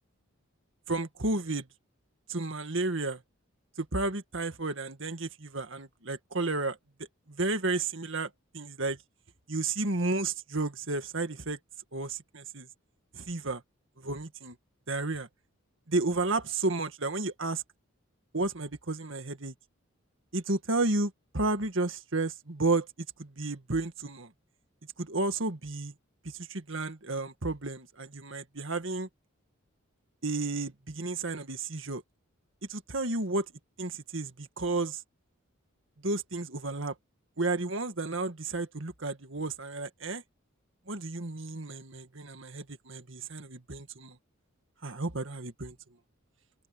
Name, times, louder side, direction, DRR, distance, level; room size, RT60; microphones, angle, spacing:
voice 1, 0.9-1.7 2.3-3.2 3.8-6.8 7.3-9.0 9.5-11.6 11.9-12.7 13.1-13.6 14.0-14.6 14.9-15.3 15.9-17.6 18.3-19.5 20.3-22.9 23.2-24.3 25.0-25.9 26.2-29.1 30.2-32.0 32.7-33.5 33.8-35.0 36.0-36.9 37.4-40.2 40.9-44.2 44.8-45.8, right 2 dB, 60° right, 2.0 m, -32 dB
open air
head